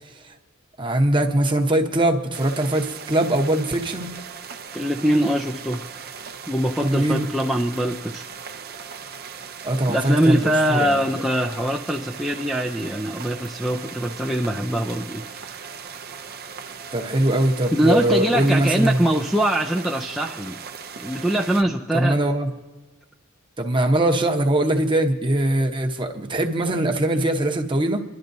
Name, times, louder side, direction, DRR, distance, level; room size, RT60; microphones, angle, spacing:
voice 1, 0.8-4.1 6.8-7.3 9.6-11.0 16.9-19.0 21.9-22.5 23.6-28.0, right 1 dB, 25° right, 3 dB, 0.9 m, -21 dB
sound 1, 2.3-21.6, right 6 dB, 45° right, 0.6 m, -38 dB
voice 2, 4.7-5.8 6.5-8.2 9.9-15.7 17.7-20.6 21.0-22.2, right 1 dB, ahead, -2 dB, 0.4 m, -23 dB
28.0 x 11.5 x 2.7 m, 1.2 s
head